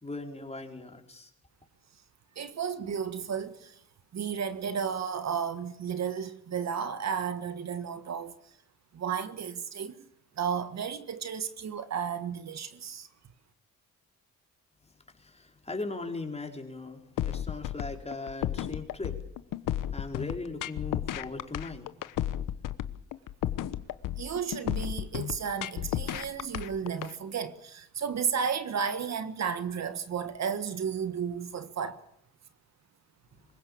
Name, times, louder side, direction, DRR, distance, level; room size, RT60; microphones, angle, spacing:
voice 1, 0.0-1.3 15.2-19.2 19.9-21.9, left 3 dB, 20° left, 4.3 m, -39 dB
voice 2, 2.3-3.8 4.1-8.3 8.9-10.1 10.4-13.1 24.2-32.0, right 7 dB, 55° right, 1.6 m, -33 dB
sound 1, 17.2-27.1, left 12 dB, 80° left, 1.2 m, -33 dB
25.0 x 16.0 x 8.6 m
cardioid pair, 80°, 32 cm